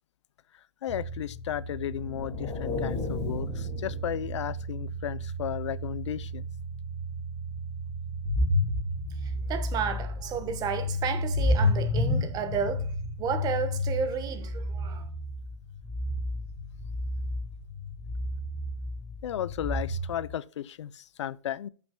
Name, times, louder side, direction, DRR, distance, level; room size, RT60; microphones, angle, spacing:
voice 1, 0.8-6.5 19.2-21.7, left 11 dB, 85° left, 0.4 m, -34 dB
sound 1, 0.9-20.3, left 1 dB, 5° left, 4.4 m, -32 dB
sound 2, 1.9-4.8, left 3 dB, 35° left, 2.0 m, -35 dB
voice 2, 9.2-12.9 13.2-15.1, right 7 dB, 25° right, 1.2 m, -32 dB
14.5 x 6.0 x 2.2 m
hypercardioid pair, 140°, 15 cm